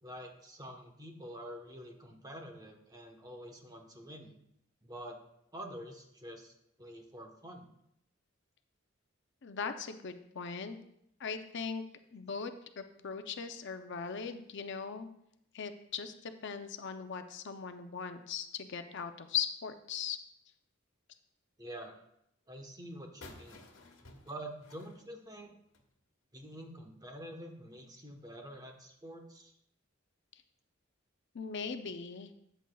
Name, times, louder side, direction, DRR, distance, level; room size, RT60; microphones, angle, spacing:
voice 1, 0.0-4.4 4.8-5.2 5.5-7.7 21.6-22.0 22.5-23.6 24.2-25.5 26.3-29.5, right 1 dB, 20° right, 3 dB, 1.1 m, -47 dB
voice 2, 9.4-10.8 11.2-11.8 12.1-15.1 15.5-20.2 31.3-32.3, left 6 dB, 60° left, 8 dB, 0.6 m, -39 dB
sound 1, 23.2-25.9, left 2 dB, 85° left, 1.2 m, -54 dB
13.0 x 7.8 x 2.3 m, 0.76 s
head